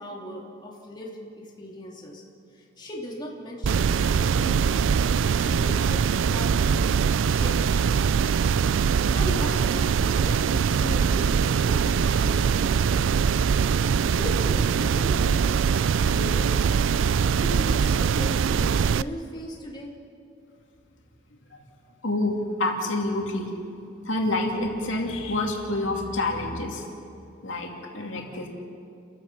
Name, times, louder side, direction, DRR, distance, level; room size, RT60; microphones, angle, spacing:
voice 1, 0.0-2.2 2.5-4.9 5.3-6.8 7.2-8.1 8.8-12.5 14.1-15.7 16.0-16.5 17.4-19.9, equal, 25° left, -3 dB, 2.7 m, -37 dB
sound 1, 3.6-19.0, right 6 dB, 85° right, 0.4 m, -22 dB
voice 2, 22.0-23.5 24.0-26.8 27.4-28.5, left 2 dB, 85° left, 1 dB, 2.6 m, -27 dB
30.0 x 15.0 x 6.0 m, 2.6 s
head